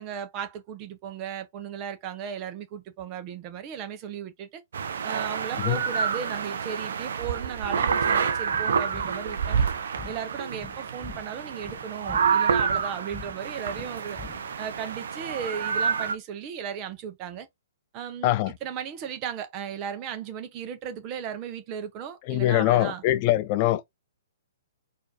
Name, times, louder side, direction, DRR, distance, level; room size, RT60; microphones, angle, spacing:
voice 1, 0.0-4.6 5.0-9.6 10.0-14.2 14.6-17.5 17.9-18.3 18.6-23.0, right 8 dB, 30° right, 1.0 m, -36 dB
sound 1, 4.7-16.1, right 6 dB, 55° right, 0.7 m, -28 dB
sound 2, 8.5-14.8, left 5 dB, 15° left, 0.7 m, -45 dB
voice 2, 22.3-23.8, left 15 dB, 35° left, 0.3 m, -23 dB
4.3 x 2.8 x 4.1 m
figure-of-eight pair, 120°, 0 cm